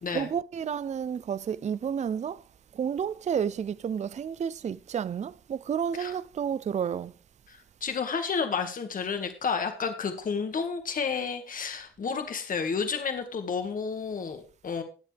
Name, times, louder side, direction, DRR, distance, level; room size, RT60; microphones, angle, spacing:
voice 1, 0.1-2.4 2.7-7.1, right 8 dB, 35° right, 0.5 m, -31 dB
voice 2, 7.5-14.8, left 5 dB, 45° left, 1.9 m, -31 dB
19.0 x 7.5 x 3.4 m
cardioid pair, 90°, 20 cm